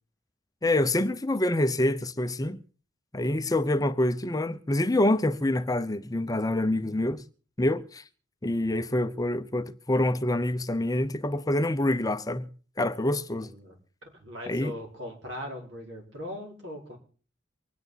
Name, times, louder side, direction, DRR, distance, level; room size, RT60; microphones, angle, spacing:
voice 1, 0.6-2.6 3.1-7.2 7.6-8.0 8.4-12.5 12.8-13.5 14.5-14.7, left 1 dB, 20° left, 0.7 m, -26 dB
voice 2, 13.4-13.8 14.2-17.0, left 1 dB, 70° right, 4.6 m, -39 dB
24.5 x 9.5 x 4.0 m
head